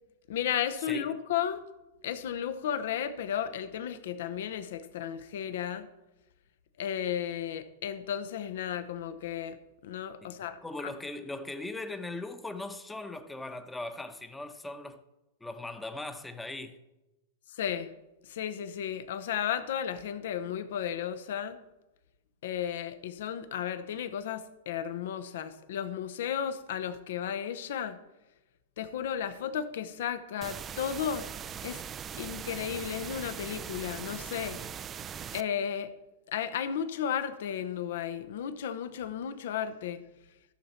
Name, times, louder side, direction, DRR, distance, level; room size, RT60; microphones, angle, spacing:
voice 1, 0.3-1.6 2.0-5.9 6.8-9.6 9.8-10.9 17.5-17.9 18.2-21.6 22.4-28.0 28.8-31.3 31.6-31.8 32.2-34.6 35.3-35.9 36.3-40.0, left 9 dB, 60° left, 0.8 m, -34 dB
voice 2, 10.2-15.0 15.4-16.8, left 2 dB, 10° left, 0.9 m, -39 dB
sound 1, 30.4-35.4, right 8 dB, 25° right, 0.4 m, -40 dB
14.0 x 6.9 x 4.3 m
figure-of-eight pair, 100°, 0 cm